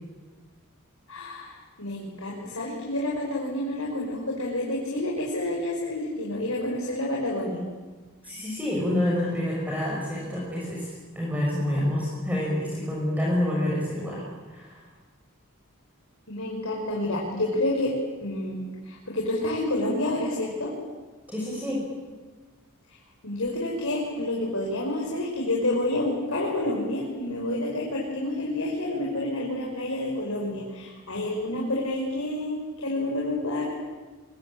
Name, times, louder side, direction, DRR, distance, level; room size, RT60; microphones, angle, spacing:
voice 1, 1.1-7.6 16.3-18.6 18.8-20.7 23.2-33.7, left 1 dB, 70° left, -2 dB, 5.7 m, -29 dB
voice 2, 8.2-14.2 14.5-14.8 21.3-21.8, left 1 dB, 10° right, -4 dB, 6.1 m, -28 dB
25.0 x 23.0 x 8.8 m, 1.3 s
head